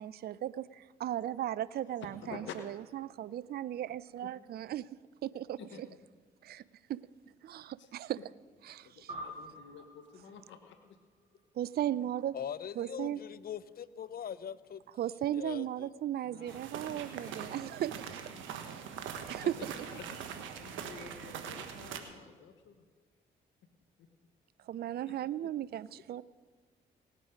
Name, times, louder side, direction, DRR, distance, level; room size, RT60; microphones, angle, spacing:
voice 1, 0.0-2.5 2.9-4.8 5.2-5.6 6.4-6.6 6.9-7.0 7.4-8.2 8.6-9.1 11.6-12.3 12.8-13.2 15.0-17.9 19.3-19.5 20.7-20.9 24.7-26.2, right 12 dB, 55° right, 0.4 m, -36 dB
voice 2, 1.8-2.6 5.6-5.8 6.5-6.6 7.8-7.9 8.8-11.0 11.3-11.4 16.2-18.4 18.7-22.8 24.0-24.1 25.0-25.5, left 7 dB, 75° left, 1.1 m, -51 dB
sound 1, 9.1-11.8, right 1 dB, 30° right, 3.5 m, -48 dB
voice 3, 12.3-14.8 15.3-15.9, left 8 dB, 50° left, 0.7 m, -41 dB
sound 2, 16.5-22.0, right 8 dB, 80° right, 1.2 m, -42 dB
18.5 x 8.2 x 5.1 m
supercardioid pair, 55°, 20 cm